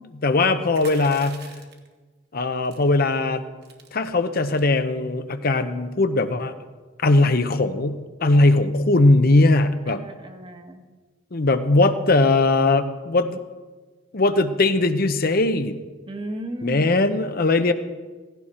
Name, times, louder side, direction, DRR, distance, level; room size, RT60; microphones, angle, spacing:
voice 1, 0.1-1.5 2.3-3.4 3.9-6.5 7.0-10.0 11.3-13.4 14.1-15.8 16.6-17.7, left 2 dB, 55° left, 9 dB, 0.8 m, -20 dB
sound 1, 0.7-1.9 2.7-2.9 3.3-3.4 3.6-3.9 4.4-4.7, right 6 dB, 60° right, 1.8 m, -44 dB
voice 2, 9.9-10.8 16.0-17.0, right 1 dB, 30° right, 4 dB, 1.4 m, -34 dB
16.0 x 16.0 x 4.3 m, 1.3 s
head